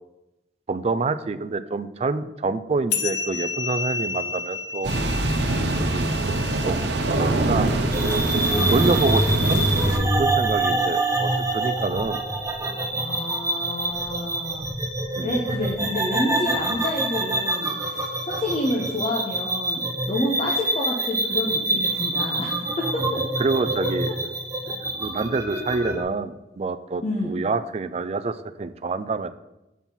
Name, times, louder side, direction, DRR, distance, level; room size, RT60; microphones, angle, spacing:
voice 1, 0.7-4.9 5.8-6.2 6.7-7.7 8.6-12.2 15.2-15.4 23.4-24.1 25.0-29.3, right 3 dB, 35° right, 12 dB, 0.4 m, -27 dB
sound 1, 2.9-7.8, left 5 dB, 70° left, 0.7 m, -32 dB
sound 2, 4.8-10.0, right 2 dB, 75° right, 0.8 m, -23 dB
sound 3, 7.9-26.0, right 1 dB, 20° right, 0.9 m, -25 dB
voice 2, 8.5-8.9 12.9-14.7 15.2-23.2 23.6-23.9 27.0-27.3, left 1 dB, 35° left, -2 dB, 1.0 m, -29 dB
7.3 x 4.4 x 5.4 m, 0.95 s
head